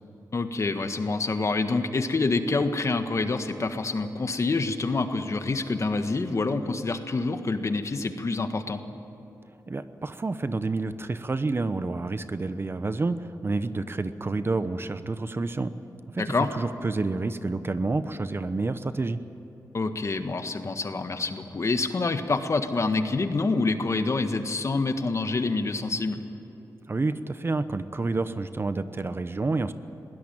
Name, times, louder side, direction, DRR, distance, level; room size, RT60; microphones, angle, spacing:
voice 1, 0.3-8.8 16.2-16.5 19.7-26.2, left 3 dB, 45° left, 8 dB, 1.6 m, -27 dB
voice 2, 9.7-15.7 16.1-19.2 26.9-29.7, right 3 dB, 35° right, 12 dB, 0.9 m, -29 dB
21.0 x 17.5 x 9.1 m, 3.0 s
cardioid pair, 80°, 7 cm